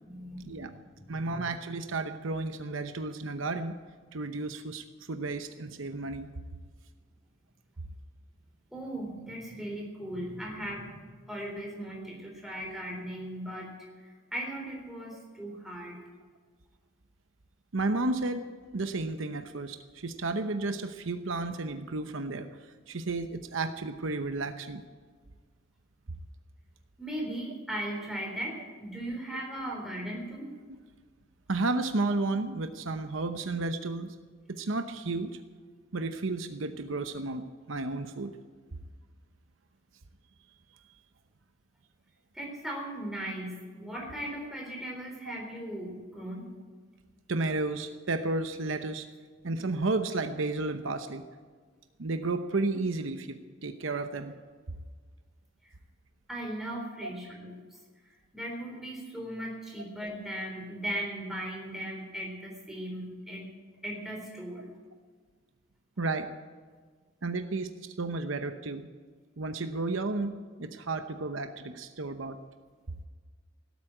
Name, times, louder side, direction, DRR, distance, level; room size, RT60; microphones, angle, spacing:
voice 1, 0.0-0.8 1.1-1.4 8.7-13.7 14.0-16.0 27.0-30.5 42.3-46.5 56.3-57.6 58.3-63.5 63.8-64.6, right 1 dB, ahead, -1 dB, 3.9 m, -38 dB
voice 2, 1.1-3.7 4.1-6.3 17.7-18.4 18.7-22.5 22.9-24.8 29.6-29.7 31.5-34.1 34.5-35.4 35.9-38.4 47.3-49.1 49.4-51.2 52.0-53.4 53.6-54.3 57.0-57.1 66.0-66.3 67.2-68.9 69.4-72.4, right 3 dB, 75° right, 8 dB, 0.9 m, -32 dB
17.5 x 8.3 x 8.9 m, 1.5 s
head